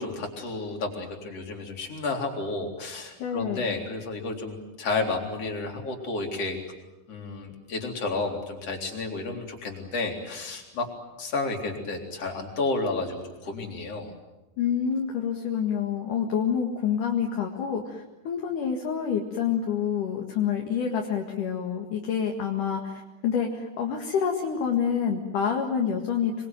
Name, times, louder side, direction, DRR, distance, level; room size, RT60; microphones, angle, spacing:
voice 1, 0.0-6.6 7.1-10.9 11.2-14.1, left 3 dB, 40° left, 1 dB, 4.6 m, -31 dB
voice 2, 3.2-3.8 14.6-26.3, left 7 dB, 55° left, 1 dB, 3.2 m, -27 dB
27.0 x 22.0 x 9.2 m, 1.1 s
omnidirectional pair, 4.6 m